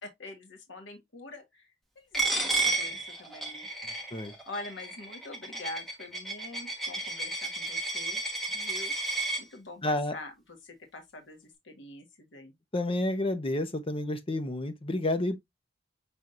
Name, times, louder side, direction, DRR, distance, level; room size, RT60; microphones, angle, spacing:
voice 1, 0.0-3.7 4.5-8.2 8.5-12.5, left 2 dB, 70° left, 1.4 m, -45 dB
Coin (dropping), 2.1-9.4, right 2 dB, ahead, 1.3 m, -32 dB
voice 2, 9.8-10.1 12.7-15.4, left 1 dB, 30° left, 0.8 m, -30 dB
6.0 x 3.5 x 2.5 m
head